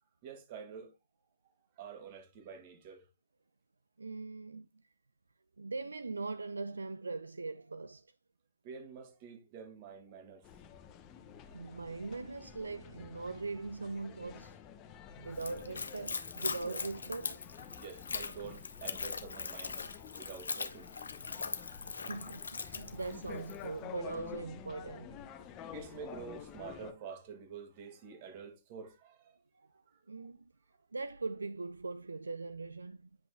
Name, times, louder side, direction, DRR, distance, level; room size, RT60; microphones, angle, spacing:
voice 1, 0.2-1.0 1.8-3.0 8.6-10.5 11.4-11.8 15.0-15.2 16.6-16.8 17.8-20.9 21.7-22.0 22.7-23.0 25.7-29.4, right 6 dB, 35° right, 1.9 m, -48 dB
voice 2, 4.0-4.7 5.6-8.1 11.5-14.6 15.2-17.5 21.9-25.2 29.5-29.7 30.1-30.4 30.9-33.1, right 3 dB, 75° right, 0.4 m, -41 dB
sound 1, 10.4-26.9, left 8 dB, 25° left, 0.9 m, -50 dB
Splash splatter / Trickle dribble, 15.3-23.7, left 5 dB, 70° left, 0.9 m, -41 dB
9.3 x 6.0 x 2.2 m
figure-of-eight pair, 125°, 0 cm